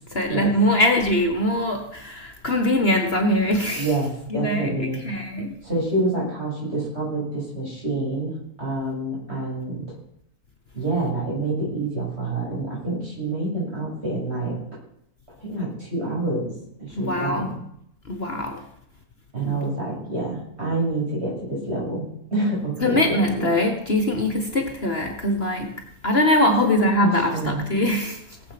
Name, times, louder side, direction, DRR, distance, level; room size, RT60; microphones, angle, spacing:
voice 1, 0.1-3.9 4.3-5.6 16.9-17.5 18.1-18.6 19.4-19.5 22.8-25.7 26.0-28.2, left 1 dB, 40° left, 5 dB, 1.5 m, -22 dB
voice 2, 3.8-5.0 5.6-9.9 10.7-14.6 15.4-16.5 16.8-17.6 19.3-23.5 26.4-26.5 27.0-27.7, right 2 dB, 45° right, -5 dB, 7.5 m, -27 dB
18.0 x 7.9 x 5.9 m, 0.74 s
omnidirectional pair, 1.6 m